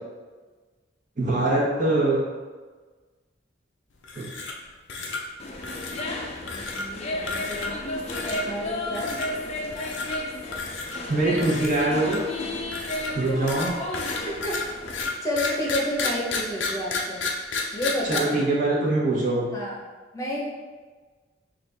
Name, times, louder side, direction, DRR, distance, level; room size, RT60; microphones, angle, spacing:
voice 1, 1.2-2.2 4.1-4.3 11.1-12.2 13.1-13.7 18.1-19.5, right 2 dB, 45° right, -5 dB, 1.1 m, -23 dB
sound 1, 4.0-4.6 4.9-5.2 5.6-6.1 6.5-6.9 7.3-7.8 8.1-8.4 8.9-9.3 9.7-10.2 10.5-11.0 11.4-12.3 12.7-18.2, left 4 dB, 85° left, 0.6 m, -31 dB
sound 2, 5.4-15.1, left 2 dB, 35° left, 0.5 m, -33 dB
voice 2, 8.2-9.1 14.2-14.6 15.2-17.2 17.7-18.3 19.5-19.7 20.1-20.4, equal, 15° left, -5 dB, 0.9 m, -29 dB
5.9 x 2.5 x 3.4 m, 1.4 s
head